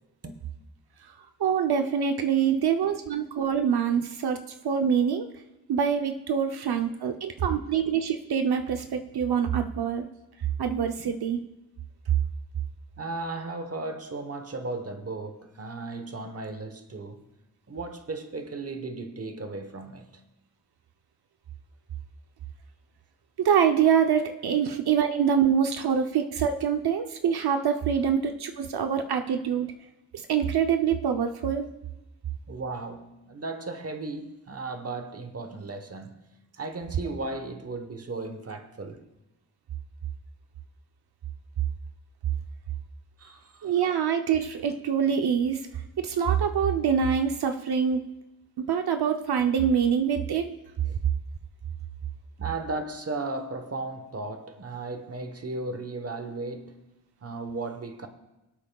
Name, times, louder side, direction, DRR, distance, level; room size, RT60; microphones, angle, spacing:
voice 1, 1.4-5.3 5.7-10.1 10.6-11.4 23.4-29.7 30.3-31.7 43.6-45.6 46.0-48.1 48.6-50.6, right 7 dB, 85° right, 0.7 m, -25 dB
voice 2, 13.0-17.3 17.7-20.1 32.5-36.3 36.6-39.1 43.2-43.9 50.8-51.0 52.4-56.8 57.2-58.1, right 3 dB, 40° right, 1.1 m, -36 dB
24.0 x 8.4 x 2.3 m
wide cardioid pair, 120°, 37 cm